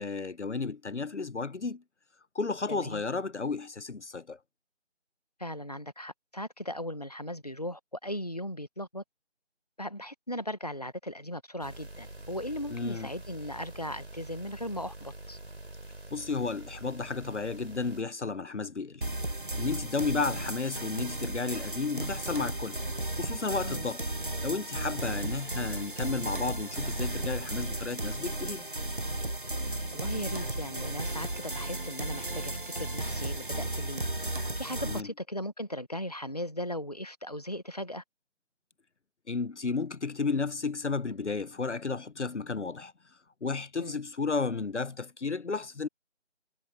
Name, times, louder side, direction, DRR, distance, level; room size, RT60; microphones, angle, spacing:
voice 1, 0.0-1.8 2.3-4.4 12.7-13.1 16.1-22.8 23.2-24.0 24.4-28.6 34.9-35.1 39.3-42.9 43.4-45.9, left 4 dB, 75° left, 0.9 m, -33 dB
voice 2, 2.7-3.0 5.4-9.0 9.8-15.4 23.6-23.9 25.2-25.3 29.9-34.0 34.6-38.0 43.8-44.0, equal, 35° left, 1.2 m, -38 dB
sound 1, 11.6-18.0, right 2 dB, 60° right, 4.1 m, -46 dB
sound 2, 19.0-35.0, right 1 dB, 45° right, 1.0 m, -34 dB
figure-of-eight pair, 180°, 36 cm